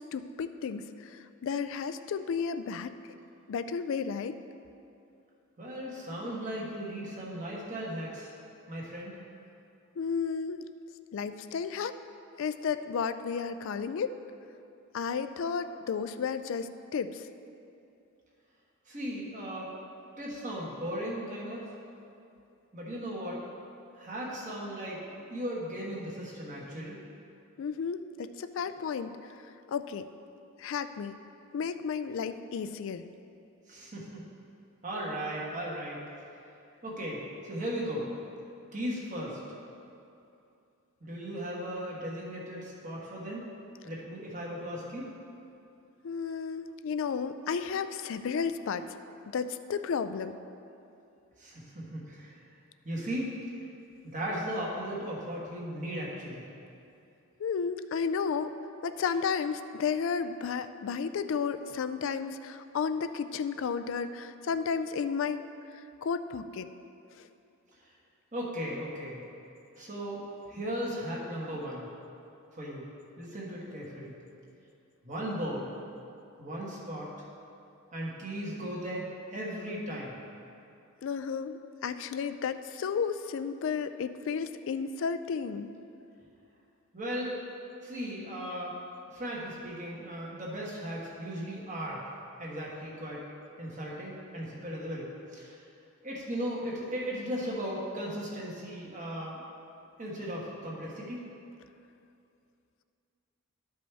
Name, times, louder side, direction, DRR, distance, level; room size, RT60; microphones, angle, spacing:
voice 1, 0.0-2.9 3.5-4.3 10.0-10.6 11.1-11.9 12.4-14.1 14.9-17.3 27.6-29.2 29.7-30.1 30.6-31.2 31.5-33.1 46.0-48.9 49.3-50.3 57.4-58.5 58.8-65.4 66.0-66.7 81.0-85.7, left 6 dB, 60° left, 11 dB, 0.3 m, -33 dB
voice 2, 5.6-8.3 8.7-9.2 18.9-19.7 20.2-21.6 22.7-23.4 23.9-27.0 33.7-34.2 34.8-36.0 36.8-38.1 38.7-39.4 41.0-43.4 43.8-45.1 51.4-52.4 52.8-53.3 54.0-56.4 68.3-69.2 69.8-70.2 70.5-71.9 72.5-72.8 73.2-74.1 75.0-75.7 76.4-77.1 77.9-79.0 79.3-80.1 86.9-87.3 87.8-88.8 89.1-92.0 92.4-93.2 93.6-95.1 95.3-95.6 96.0-99.4 100.0-101.2, equal, 35° right, -4 dB, 1.4 m, -37 dB
13.0 x 5.2 x 3.4 m, 2.7 s
head